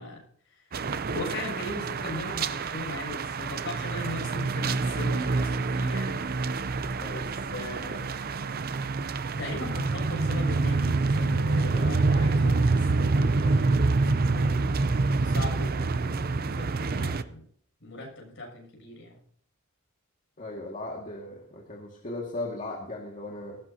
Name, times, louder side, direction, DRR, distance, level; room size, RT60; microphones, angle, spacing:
voice 1, 0.0-6.2 7.1-7.2 7.5-8.1 9.4-14.7 15.2-17.4 17.8-19.2, left 1 dB, 60° left, 0 dB, 7.4 m, -39 dB
sound 1, 0.7-17.2, right 3 dB, 45° right, 0.6 m, -27 dB
voice 2, 20.4-23.6, left 2 dB, 40° left, -1 dB, 2.1 m, -37 dB
18.5 x 15.5 x 2.8 m, 0.62 s
head